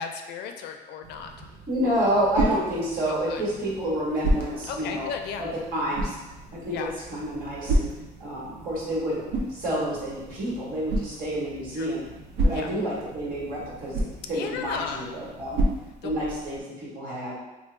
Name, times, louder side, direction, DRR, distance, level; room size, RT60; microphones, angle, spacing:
voice 1, 0.0-1.5 3.1-3.4 4.7-5.5 6.7-6.9 11.7-11.9 12.5-12.7 14.3-15.1 16.0-16.2, left 6 dB, 75° left, 5 dB, 0.4 m, -35 dB
sound 1, 1.0-15.9, right 2 dB, 35° right, 0.5 m, -49 dB
voice 2, 1.7-5.1 5.4-6.2 6.5-7.9 8.2-9.2 9.5-12.1 12.4-15.6 16.0-17.3, equal, 60° right, -6 dB, 1.4 m, -29 dB
sound 2, 1.7-16.6, right 1 dB, 85° right, 0.5 m, -32 dB
3.1 x 2.2 x 3.3 m, 1.1 s
cardioid pair, 110°, 17 cm